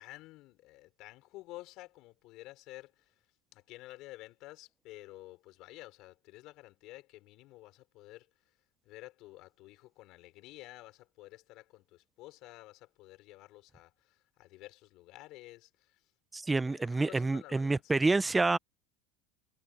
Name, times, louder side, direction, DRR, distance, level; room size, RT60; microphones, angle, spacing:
voice 1, 0.0-3.2 3.5-8.3 8.8-16.1 16.6-17.9, left 18 dB, 45° left, 4.7 m, -51 dB
voice 2, 16.3-18.6, right 3 dB, 10° right, 0.6 m, -28 dB
supercardioid pair, 155°, 0 cm